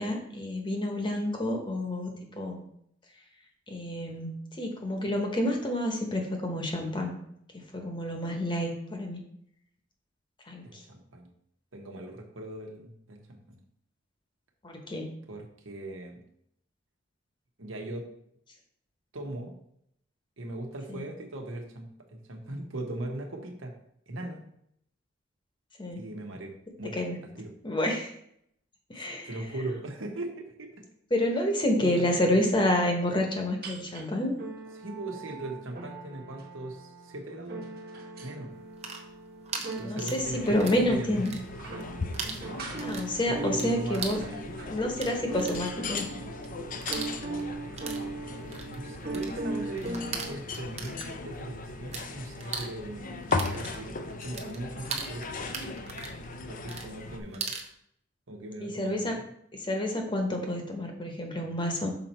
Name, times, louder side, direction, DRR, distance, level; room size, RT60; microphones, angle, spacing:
voice 1, 0.0-2.1 2.4-2.6 3.7-7.1 7.7-9.2 10.5-10.6 14.6-15.1 20.9-21.0 25.8-26.0 27.0-27.1 27.6-28.1 28.9-29.3 31.1-34.4 39.8-41.3 42.8-44.2 44.7-46.0 58.6-59.1 59.6-61.9, left 1 dB, 25° left, 2 dB, 1.1 m, -29 dB
voice 2, 10.6-11.3 11.7-13.6 15.3-16.2 17.6-18.1 19.1-19.5 20.4-23.7 24.1-24.4 26.0-26.5 26.8-27.0 27.3-27.5 29.2-30.7 31.8-32.4 34.7-37.7 38.2-38.5 39.6-41.5 42.4-42.6 43.3-44.5 47.6-55.3 56.5-57.5 58.3-59.2, right 2 dB, 90° right, 2 dB, 1.2 m, -39 dB
sound 1, 33.6-34.1 34.4-50.4, right 2 dB, 50° right, 1.1 m, -40 dB
sound 2, 38.6-40.9 41.1-41.9 42.1-52.1 52.3-57.7, right 5 dB, 35° right, 0.8 m, -39 dB
sound 3, 40.2-57.2, left 3 dB, 45° left, 0.6 m, -38 dB
6.1 x 4.5 x 4.3 m, 0.71 s
head